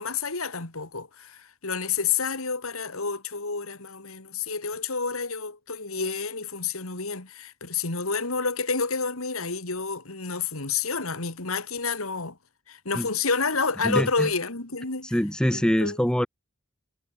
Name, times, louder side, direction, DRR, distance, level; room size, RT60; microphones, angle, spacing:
voice 1, 0.0-12.4 12.7-15.1 15.5-16.0, left 5 dB, 75° left, 3.1 m, -29 dB
voice 2, 13.8-14.3 15.0-16.3, equal, 5° left, 0.7 m, -24 dB
head